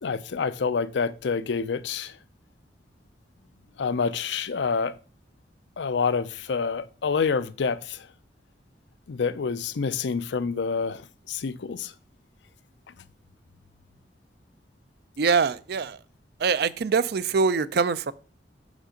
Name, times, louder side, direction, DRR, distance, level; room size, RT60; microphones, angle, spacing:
voice 1, 0.0-2.1 3.8-4.9 5.8-8.1 9.1-11.9, left 5 dB, 80° left, 0.5 m, -27 dB
voice 2, 15.2-16.0 16.4-18.1, right 5 dB, 60° right, 0.4 m, -24 dB
6.6 x 5.0 x 5.1 m
head